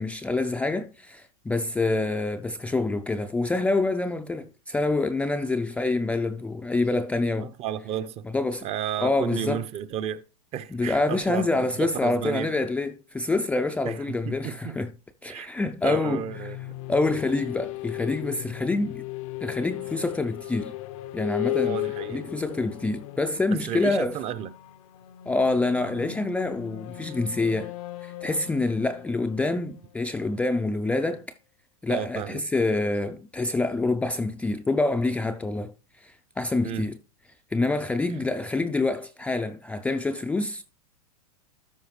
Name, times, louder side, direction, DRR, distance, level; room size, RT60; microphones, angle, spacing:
voice 1, 0.0-7.5 8.3-8.7 9.0-9.7 10.7-14.9 15.2-16.2 16.9-19.0 19.4-20.8 21.1-21.8 22.1-24.1 25.3-27.7 28.0-31.3 31.8-35.7 36.0-37.0 37.5-40.6, left 2 dB, 5° left, 0.4 m, -26 dB
voice 2, 7.4-8.3 8.6-10.2 10.5-12.5 13.8-14.8 15.3-15.5 15.8-16.8 21.6-22.3 23.7-24.5 31.9-32.4 36.6-36.9, right 10 dB, 30° right, 0.6 m, -32 dB
sound 1, 15.8-30.5, left 15 dB, 60° left, 0.6 m, -36 dB
13.0 x 4.8 x 3.2 m
hypercardioid pair, 125°, 19 cm